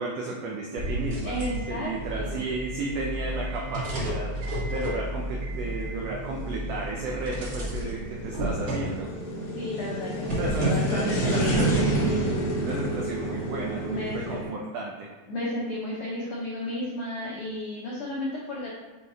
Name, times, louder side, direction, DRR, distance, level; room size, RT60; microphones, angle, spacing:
voice 1, 0.0-1.4 1.7-4.3 4.7-9.1 10.4-12.3 12.6-15.1, right 3 dB, 85° right, -1 dB, 1.4 m, -33 dB
sound 1, 0.8-9.5 10.2-12.1, right 1 dB, 70° right, 0.8 m, -32 dB
voice 2, 1.2-2.4 9.5-11.6 13.8-14.6 15.3-18.7, left 1 dB, 80° left, -5 dB, 1.2 m, -33 dB
sound 2, 2.0-14.4, right 1 dB, 65° left, 1.5 m, -30 dB
6.4 x 3.7 x 4.0 m, 1.2 s
omnidirectional pair, 3.7 m